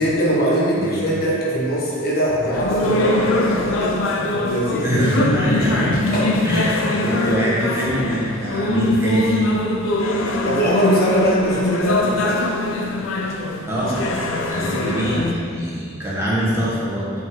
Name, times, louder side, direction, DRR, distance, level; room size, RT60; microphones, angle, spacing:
voice 1, 0.0-4.0 4.3-5.0 6.1-6.5 10.4-12.4 14.6-14.9, equal, 50° left, -5 dB, 1.4 m, -21 dB
sound 1, 2.5-15.3, left 2 dB, 85° left, 0.7 m, -22 dB
voice 2, 4.8-6.0 6.4-9.4 12.2-12.4 13.6-14.0 14.5-17.1, equal, 15° right, -8 dB, 1.7 m, -23 dB
8.0 x 5.3 x 4.0 m, 2.2 s
head